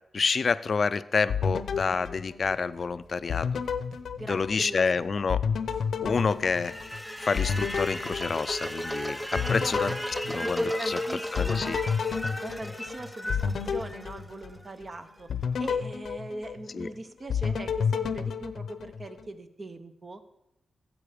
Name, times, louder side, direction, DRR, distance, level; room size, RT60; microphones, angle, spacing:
voice 1, 0.1-3.5 4.3-5.4 6.0-6.7 7.2-9.9 10.3-11.0 11.3-11.8 16.7-16.9, left 5 dB, 50° left, 15 dB, 0.4 m, -28 dB
sound 1, 1.3-2.9 3.3-4.9 5.3-9.0 9.4-11.0 11.4-14.8 15.3-16.9 17.3-19.3, left 6 dB, 90° left, 0.7 m, -31 dB
sound 2, 2.7-3.5 3.9-4.7 5.0-7.1 7.4-7.8, right 1 dB, 75° right, 1.5 m, -55 dB
voice 2, 4.2-4.9 9.4-11.8 12.4-13.4 13.7-15.3 15.6-20.2, right 2 dB, 30° right, 10 dB, 0.9 m, -40 dB
sound 3, 6.5-14.6, equal, ahead, 0.6 m, -34 dB
14.5 x 7.7 x 5.1 m, 0.85 s
wide cardioid pair, 125°, 0 cm